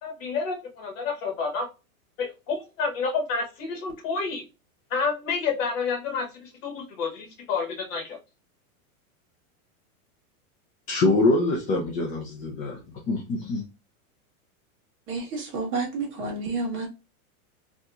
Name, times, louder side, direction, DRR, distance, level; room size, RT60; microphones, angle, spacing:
voice 1, 0.0-1.7 2.2-4.4 4.9-8.2, left 5 dB, 60° left, 3 dB, 1.8 m, -29 dB
voice 2, 10.9-13.7, left 2 dB, 20° left, -2 dB, 0.5 m, -24 dB
voice 3, 15.1-16.9, right 3 dB, 25° right, -1 dB, 1.4 m, -30 dB
3.5 x 2.9 x 2.4 m, 0.28 s
supercardioid pair, 150°, 44 cm